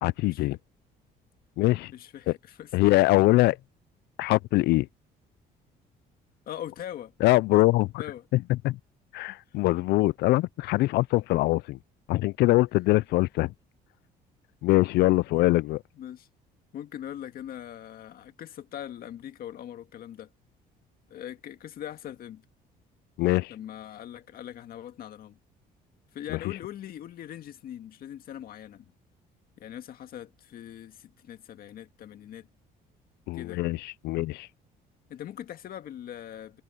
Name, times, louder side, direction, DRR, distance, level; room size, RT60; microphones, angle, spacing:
voice 1, 0.0-0.6 1.6-1.9 2.3-2.4 2.7-3.6 4.2-4.9 7.2-8.0 8.3-8.8 9.1-11.8 12.1-13.5 14.6-15.8 23.2-23.5 26.3-26.4 33.3-33.8 34.0-34.5, left 19 dB, 75° left, 0.4 m, -23 dB
voice 2, 1.9-2.7 6.5-7.1 8.0-8.3 14.9-15.2 15.9-16.3 16.7-20.3 21.1-22.4 23.5-25.4 26.1-28.9 29.6-32.5 33.3-33.6 35.1-36.6, left 11 dB, 60° left, 1.9 m, -41 dB
cardioid pair, 110°, 17 cm